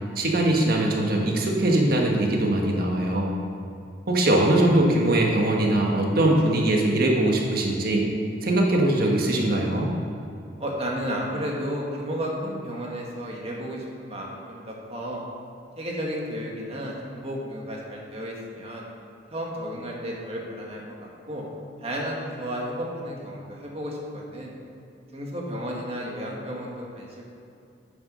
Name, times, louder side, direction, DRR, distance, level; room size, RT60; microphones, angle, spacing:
voice 1, 0.1-3.3 4.1-8.1 8.4-9.9, right 1 dB, 50° right, 0 dB, 1.4 m, -21 dB
voice 2, 10.6-15.2 15.8-18.9 19.3-21.4 21.8-24.5 25.1-27.2, equal, 30° right, -2 dB, 1.8 m, -33 dB
9.3 x 7.1 x 6.3 m, 2.7 s
head